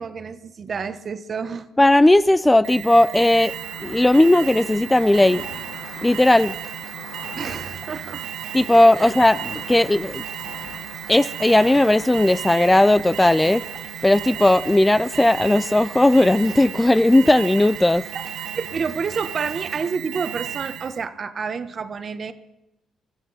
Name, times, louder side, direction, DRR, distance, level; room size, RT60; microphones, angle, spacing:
voice 1, 0.0-1.7 7.4-8.3 9.0-9.1 18.5-22.3, right 5 dB, 45° right, 1.2 m, -29 dB
voice 2, 1.8-3.5 3.8-5.4 6.0-6.5 8.5-10.2 11.1-13.6 14.0-18.1, left 1 dB, 10° left, 0.4 m, -16 dB
Alarm, 2.6-21.0, right 11 dB, 85° right, 0.7 m, -34 dB
sound 1, 3.4-16.7 17.0-17.7 18.0-18.8 19.1-21.4, left 7 dB, 90° left, 1.5 m, -45 dB
sound 2, 4.9-20.0, left 2 dB, 25° left, 3.4 m, -46 dB
21.0 x 14.0 x 4.2 m
cardioid pair, 90°, 0 cm